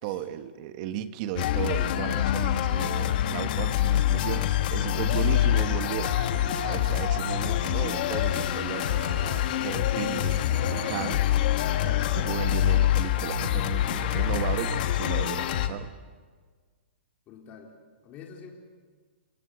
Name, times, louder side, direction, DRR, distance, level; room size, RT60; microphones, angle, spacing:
voice 1, 0.0-6.2 6.6-9.0 9.6-11.3 11.8-15.9, right 11 dB, 40° right, 10 dB, 1.5 m, -35 dB
sound 1, 1.4-15.7, left 11 dB, 50° left, 1.5 m, -26 dB
sound 2, 6.1-7.1 8.7-9.5 10.5-11.2 13.2-13.4 14.2-14.3 15.3-15.4, right 6 dB, 75° right, 2.7 m, -43 dB
sound 3, 8.0-9.4 12.1-12.3 12.8-13.6, equal, 10° right, 5.1 m, -50 dB
voice 2, 17.3-17.8 18.0-18.5, left 6 dB, 25° left, 1 dB, 3.7 m, -47 dB
29.5 x 17.0 x 8.2 m, 1.5 s
hypercardioid pair, 150°, 6 cm